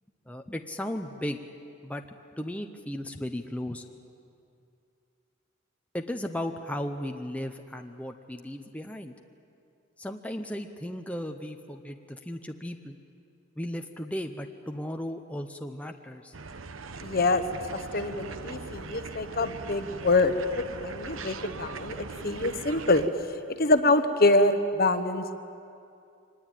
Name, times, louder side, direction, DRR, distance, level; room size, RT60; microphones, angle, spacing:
voice 1, 0.3-1.4 1.8-2.0 2.4-3.8 5.9-9.1 10.0-13.0 13.6-16.3, left 1 dB, 5° left, 4 dB, 0.8 m, -35 dB
sound 1, 16.3-23.1, right 4 dB, 70° right, 0.9 m, -40 dB
voice 2, 17.0-17.4 17.9-20.3 20.7-23.0 23.6-25.3, left 2 dB, 45° left, 9 dB, 1.1 m, -25 dB
24.5 x 20.0 x 9.1 m, 2.6 s
head